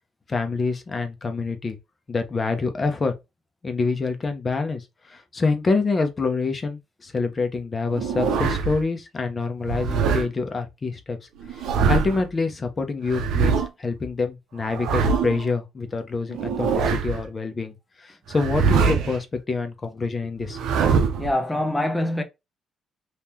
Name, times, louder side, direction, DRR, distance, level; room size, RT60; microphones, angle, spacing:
voice 1, 0.3-1.8 2.1-3.1 3.6-4.8 5.1-11.2 11.6-20.6, left 4 dB, 35° left, 1.0 m, -26 dB
sound 1, 7.9-8.8 9.6-10.3 11.4-12.3 13.1-13.7 14.6-15.5 16.3-17.3 18.3-19.2 20.4-21.3, right 5 dB, 85° right, 0.6 m, -23 dB
voice 2, 21.2-22.2, left 1 dB, 10° left, 0.9 m, -24 dB
3.7 x 2.8 x 2.9 m
cardioid pair, 90°, 0 cm